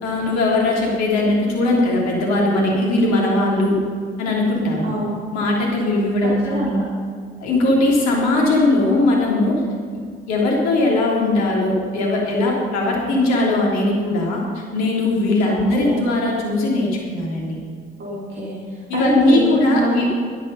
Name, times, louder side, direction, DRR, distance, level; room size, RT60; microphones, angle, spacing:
voice 1, 0.0-3.8 4.2-4.9 5.3-6.8 7.4-9.6 10.3-17.6 18.9-20.0, left 2 dB, 60° left, -2 dB, 3.1 m, -19 dB
voice 2, 6.5-6.8 15.4-16.0 18.0-20.1, right 2 dB, 40° right, -7 dB, 3.5 m, -25 dB
12.0 x 12.0 x 5.4 m, 2.1 s
figure-of-eight pair, 50°, 30 cm